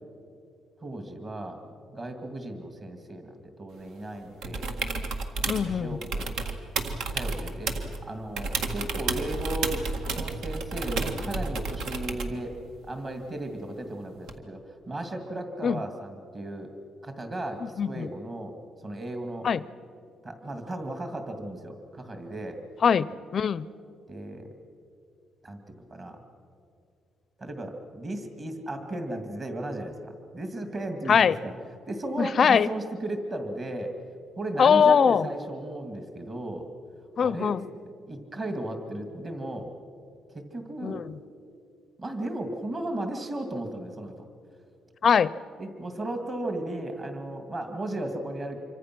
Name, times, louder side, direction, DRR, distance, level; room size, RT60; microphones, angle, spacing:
voice 1, 0.8-1.6 1.9-4.7 5.6-6.3 7.1-7.7 8.0-9.8 10.1-12.6 12.9-16.7 17.0-18.5 18.8-19.5 20.2-22.6 24.1-24.5 25.4-26.2 27.4-31.5 31.9-33.9 34.4-36.7 37.2-37.6 38.1-39.7 40.3-41.0 42.0-44.3 45.6-48.6, right 1 dB, 30° right, 5 dB, 2.2 m, -35 dB
sound 1, 4.4-5.7 6.0-8.0 8.4-12.4 14.3-14.4, right 3 dB, 80° right, 1.8 m, -31 dB
voice 2, 5.5-6.0 15.6-15.8 17.8-18.1 19.4-19.6 22.8-23.7 31.1-31.4 32.2-32.7 34.6-35.2 37.2-37.6 40.8-41.1 45.0-45.3, left 7 dB, 40° left, 18 dB, 0.5 m, -22 dB
26.5 x 24.0 x 6.1 m, 2.5 s
cardioid pair, 150°, 0 cm